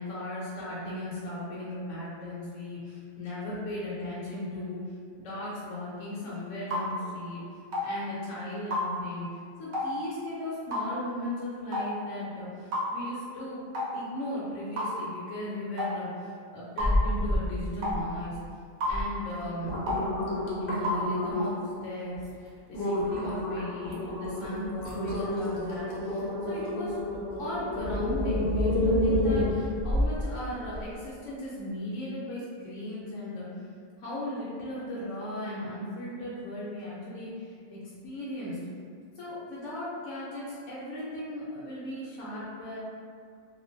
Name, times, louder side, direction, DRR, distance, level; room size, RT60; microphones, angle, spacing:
voice 1, 0.0-4.8 5.2-13.6 13.9-18.4 18.9-19.8 20.6-27.0 27.4-33.5 34.0-38.6 39.2-42.8, left 1 dB, 85° left, -8 dB, 0.9 m, -37 dB
sound 1, 6.7-6.9 7.7-7.9 8.7-8.9 9.7-9.9 10.7-10.9 11.7-11.9 12.7-12.9 13.7-13.9 14.8-15.0 15.8-15.9 16.8-16.9 17.8-18.0 18.8-19.0 19.9-20.0 20.8-21.0, left 2 dB, 80° right, 1.0 m, -30 dB
sound 2, 16.8-17.5 17.8-18.3 18.9-19.0 19.4-21.7 22.2-22.3 22.7-30.2 30.7-30.8, left 1 dB, 60° left, 0.7 m, -29 dB
2.4 x 2.1 x 2.5 m, 2.2 s
omnidirectional pair, 1.3 m